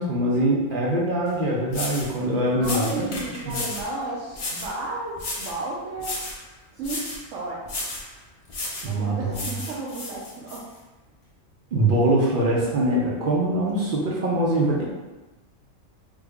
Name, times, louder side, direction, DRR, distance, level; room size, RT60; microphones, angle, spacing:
voice 1, 0.0-3.1 3.5-3.6 8.8-9.4 11.7-14.8, right 1 dB, 55° right, -4 dB, 0.6 m, -23 dB
sound 1, 1.3-1.4 1.7-2.1 2.6-3.9 4.3-4.8 5.2-5.6 6.0-6.4 6.8-7.2 7.7-8.1 8.5-8.9 9.3-10.6, left 2 dB, 65° left, 0.3 m, -33 dB
voice 2, 2.5-6.2 6.7-7.6 8.8-10.6, right 2 dB, 75° right, -6 dB, 0.9 m, -33 dB
3.3 x 2.0 x 3.4 m, 1.1 s
omnidirectional pair, 1.3 m